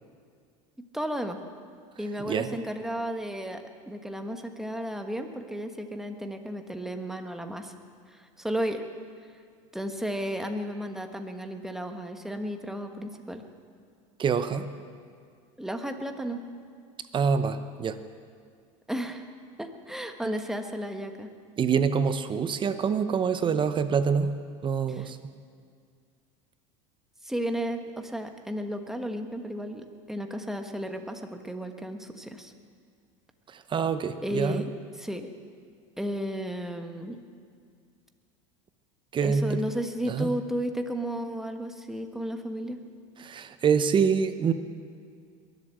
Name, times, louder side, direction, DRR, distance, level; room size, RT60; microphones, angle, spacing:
voice 1, 0.9-1.4 2.0-7.7 8.1-8.8 9.7-13.4 15.6-16.4 18.9-19.3 19.6-21.3 24.9-25.1 27.2-32.5 34.2-35.3 36.0-37.2 39.2-42.8, equal, ahead, 5 dB, 1.4 m, -33 dB
voice 2, 2.2-2.5 14.2-14.7 17.1-18.0 21.6-24.3 24.6-25.2 33.5-34.6 39.1-39.6 40.1-40.3 43.2-44.5, right 6 dB, 30° right, 11 dB, 0.8 m, -26 dB
21.5 x 8.0 x 7.7 m, 2.2 s
supercardioid pair, 105°, 16 cm